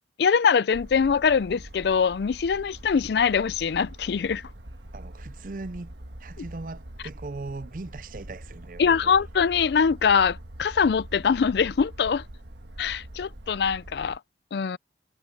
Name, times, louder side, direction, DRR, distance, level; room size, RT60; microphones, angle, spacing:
voice 1, 0.2-4.4 8.8-12.2 12.8-14.2 14.5-14.8, left 6 dB, 65° left, 0.4 m, -23 dB
sound 1, 0.7-14.2, right 1 dB, 75° right, 1.5 m, -43 dB
voice 2, 4.9-5.9 6.2-9.1, right 3 dB, 50° right, 0.5 m, -39 dB
head